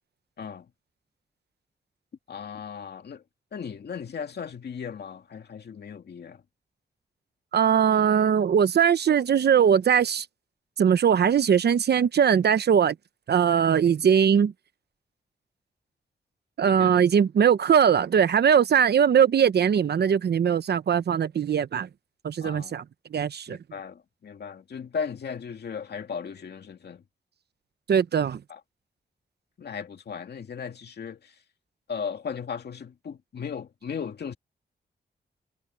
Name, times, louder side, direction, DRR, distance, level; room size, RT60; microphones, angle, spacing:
voice 1, 2.3-3.2 3.5-6.4 16.6-17.0 22.4-22.8 23.5-27.0 28.5-28.6 29.6-31.3 31.9-34.3, left 6 dB, 70° left, 2.3 m, -36 dB
voice 2, 7.5-10.3 10.8-12.9 13.3-14.5 16.6-21.9 22.2-22.8 23.1-23.6 27.9-28.4, right 8 dB, 70° right, 0.9 m, -21 dB
wide cardioid pair, 115°, 18 cm